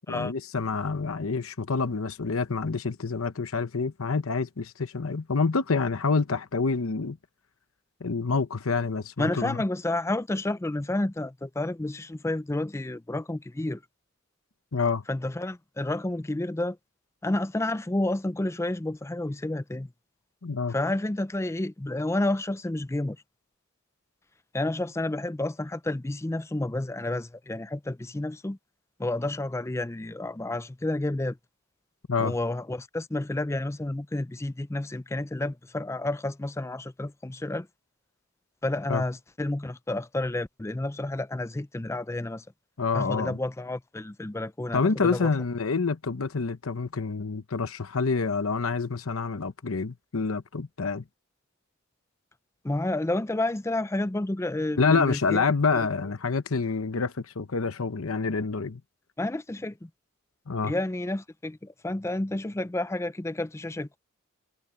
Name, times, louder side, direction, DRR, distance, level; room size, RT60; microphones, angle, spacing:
voice 1, 0.1-7.2 8.0-9.6 14.7-15.0 20.4-20.7 32.1-32.3 38.9-39.0 42.8-43.4 44.7-51.0 54.8-58.8 60.5-60.7, left 4 dB, 75° left, 0.9 m, -27 dB
voice 2, 9.2-13.8 15.1-16.8 17.2-19.9 20.7-23.2 24.5-28.6 29.0-31.4 32.2-37.7 38.6-42.4 42.9-45.3 52.6-55.4 55.7-55.9 59.2-59.9 60.6-64.0, left 2 dB, 15° left, 0.4 m, -30 dB
head